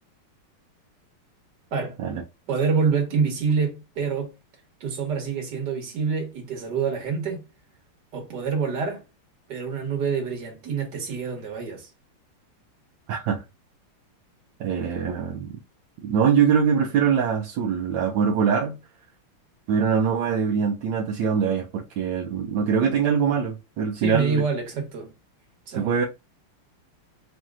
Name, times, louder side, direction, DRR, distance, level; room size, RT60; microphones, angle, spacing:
voice 1, 2.5-4.3 4.8-7.4 8.1-9.0 9.5-11.9 23.9-25.1 25.7-25.9, right 5 dB, 55° right, 1.7 m, -26 dB
voice 2, 13.1-13.4 14.6-15.6 16.0-18.8 19.7-24.4 25.7-26.0, right 7 dB, 70° right, 1.2 m, -23 dB
5.2 x 2.9 x 2.4 m
omnidirectional pair, 2.4 m